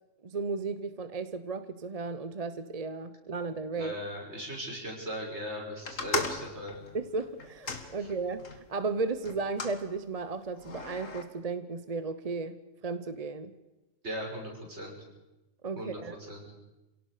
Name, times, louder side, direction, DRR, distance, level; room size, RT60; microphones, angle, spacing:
voice 1, 0.2-4.0 6.1-6.2 6.9-13.5 15.6-16.2, right 4 dB, 35° right, 11 dB, 0.8 m, -34 dB
voice 2, 3.7-6.8 8.0-8.1 14.0-15.0 15.8-16.0 16.3-16.5, equal, 55° right, -1 dB, 6.4 m, -38 dB
sound 1, 5.9-8.6 9.2-9.8 10.6-11.2, left 4 dB, 75° left, 2.3 m, -37 dB
27.0 x 17.5 x 6.6 m, 1.0 s
omnidirectional pair, 1.3 m